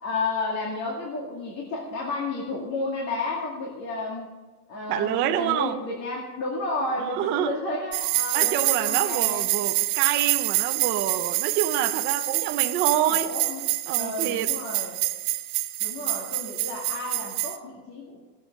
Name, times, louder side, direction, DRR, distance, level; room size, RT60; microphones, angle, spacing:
voice 1, 0.0-4.3 4.7-9.4 13.1-13.6 13.9-15.0 15.8-18.2, left 3 dB, 35° left, 2.1 m, -32 dB
voice 2, 4.9-5.7 7.0-7.6 8.3-13.3 13.9-14.5, right 11 dB, 25° right, 0.4 m, -27 dB
sound 1, 7.9-17.6, right 17 dB, 50° right, 0.9 m, -26 dB
18.0 x 7.1 x 6.3 m
supercardioid pair, 160°, 50 cm